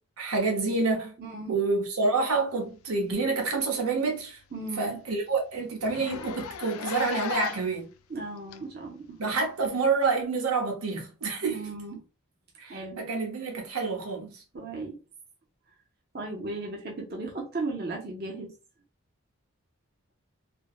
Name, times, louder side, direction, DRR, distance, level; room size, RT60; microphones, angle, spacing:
voice 1, 0.2-1.1 1.5-4.4 4.8-7.9 9.2-11.7 12.6-14.3, right 4 dB, 80° right, 0.9 m, -28 dB
voice 2, 1.2-1.6 4.5-5.0 8.1-9.2 11.5-12.0 12.7-13.1 14.5-15.0 16.1-18.5, right 2 dB, 45° right, 0.6 m, -36 dB
Zipper (clothing), 3.2-3.4 3.7-3.8 4.2-4.3 4.7-4.8 5.0-5.2 5.8-7.8 8.5-8.6 9.6-9.7, left 8 dB, 75° left, 0.3 m, -36 dB
3.3 x 2.1 x 2.3 m
head